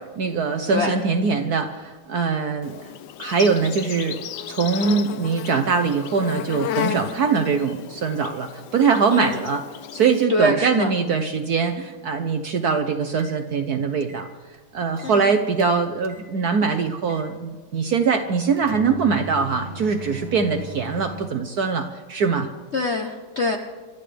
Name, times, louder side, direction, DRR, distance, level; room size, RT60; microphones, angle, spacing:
voice 1, 0.0-2.9 3.2-9.6 9.9-14.3 14.7-22.5, right 5 dB, 65° right, 7 dB, 1.0 m, -22 dB
Insect, 2.6-10.2, left 11 dB, 70° left, 1.0 m, -33 dB
voice 2, 9.1-9.4 10.3-10.9 15.0-15.4 22.7-23.6, left 2 dB, 55° left, 3 dB, 0.7 m, -24 dB
sound 1, 13.1-13.4 14.0-15.2 15.5-16.3 17.1-17.3 18.4-21.3, right 3 dB, 40° right, 1.2 m, -38 dB
28.5 x 12.5 x 3.4 m, 1.5 s
omnidirectional pair, 2.4 m